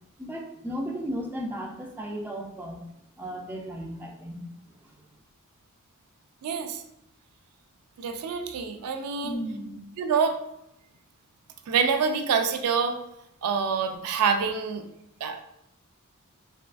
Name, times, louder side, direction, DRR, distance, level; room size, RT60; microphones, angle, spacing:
voice 1, 0.2-2.8 3.2-5.0 9.2-9.8, equal, 10° right, -1 dB, 0.3 m, -35 dB
voice 2, 6.4-6.8 8.0-9.4 10.0-10.4 11.7-13.0 13.4-14.8 15.2-15.4, right 6 dB, 85° right, 7 dB, 0.4 m, -26 dB
3.4 x 2.3 x 2.3 m, 0.79 s
head